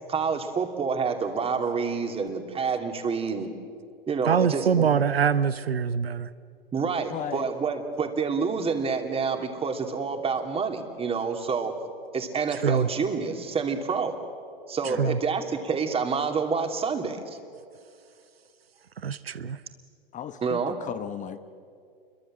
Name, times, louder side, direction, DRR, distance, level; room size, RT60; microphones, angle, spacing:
voice 1, 0.1-3.5 4.1-4.9 6.7-11.8 12.1-14.2 14.7-17.4 20.4-20.8, right 5 dB, 20° right, 5 dB, 2.8 m, -28 dB
voice 2, 4.3-6.3 12.6-12.9 15.0-15.2 19.0-19.6, right 7 dB, 85° right, 14 dB, 0.9 m, -24 dB
voice 3, 7.1-7.4 14.9-15.1 20.1-21.4, left 9 dB, 25° left, 11 dB, 1.0 m, -36 dB
29.0 x 23.0 x 7.6 m, 2.3 s
figure-of-eight pair, 100°, 29 cm